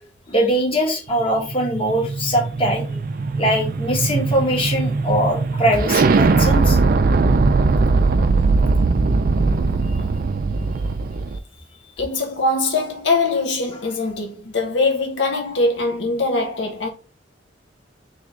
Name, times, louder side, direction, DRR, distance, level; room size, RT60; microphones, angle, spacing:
voice 1, 0.3-3.0 3.4-6.8 10.0-10.1, equal, 30° left, 1.2 m, -21 dB
sound 1, 1.2-11.4, right 3 dB, 50° right, 0.4 m, -19 dB
voice 2, 12.0-16.9, left 3 dB, 75° left, 0.7 m, -22 dB
3.4 x 3.1 x 3.7 m
head